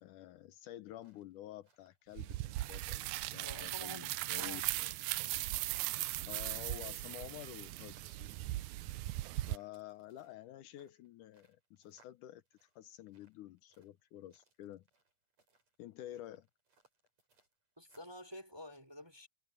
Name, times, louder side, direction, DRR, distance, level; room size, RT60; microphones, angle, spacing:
voice 1, 0.0-4.9 6.3-8.3 9.2-14.9 15.8-16.5, left 13 dB, 75° left, 2.3 m, -50 dB
sound 1, 0.8-18.2, right 3 dB, 55° right, 8.4 m, -75 dB
sound 2, 2.2-9.6, right 17 dB, 80° right, 1.8 m, -38 dB
voice 2, 3.4-4.6 17.8-19.3, left 1 dB, 10° right, 2.8 m, -50 dB
omnidirectional pair, 3.7 m